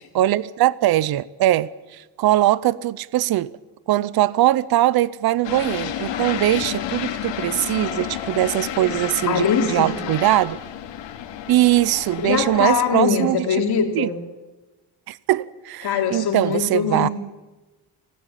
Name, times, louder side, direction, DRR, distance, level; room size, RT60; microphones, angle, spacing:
voice 1, 0.1-3.5 3.9-10.6 11.5-13.4 13.9-14.1 15.1-17.1, right 14 dB, 60° right, 0.7 m, -21 dB
sound 1, 5.4-12.7, left 10 dB, 85° left, 2.5 m, -31 dB
voice 2, 9.3-10.1 12.2-14.2 15.8-17.1, left 6 dB, 60° left, 3.6 m, -22 dB
25.0 x 18.5 x 9.1 m
cardioid pair, 150°, 43 cm